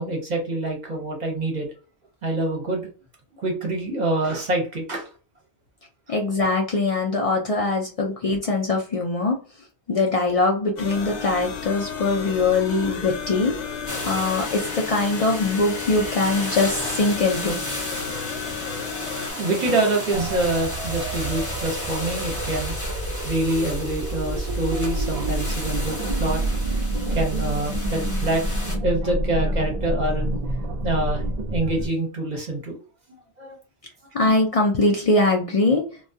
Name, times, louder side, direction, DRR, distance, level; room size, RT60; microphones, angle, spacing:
voice 1, 0.0-1.7 2.2-2.9 3.4-5.1 6.1-6.2 8.1-8.2 18.6-22.7 23.2-26.4 26.8-28.4 28.8-30.4 30.8-32.8 33.4-33.6, right 2 dB, 45° right, 0 dB, 0.8 m, -26 dB
voice 2, 6.1-9.4 9.9-13.5 14.0-17.6 34.1-35.8, left 3 dB, 65° left, 0 dB, 0.3 m, -22 dB
sound 1, 10.8-19.3, left 6 dB, 85° left, 0.9 m, -33 dB
sound 2, 13.9-28.8, left 1 dB, 20° left, 0.7 m, -34 dB
sound 3, 20.1-31.9, right 1 dB, 65° right, 0.3 m, -28 dB
2.2 x 2.2 x 2.5 m, 0.37 s
omnidirectional pair, 1.2 m